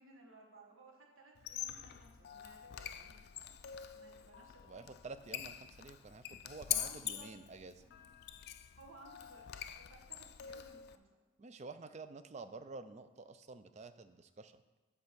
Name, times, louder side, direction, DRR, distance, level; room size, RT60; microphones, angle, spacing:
voice 1, 0.0-3.1 3.9-4.9 6.7-7.3 7.8-8.1 8.7-9.5 9.7-11.1, right 2 dB, 85° right, -1 dB, 1.6 m, -59 dB
Squeak, 1.3-11.0, left 11 dB, 50° left, 0.4 m, -44 dB
voice 2, 4.6-7.8 11.4-14.6, right 3 dB, 35° right, 11 dB, 0.4 m, -50 dB
9.7 x 3.5 x 6.8 m, 1.2 s
head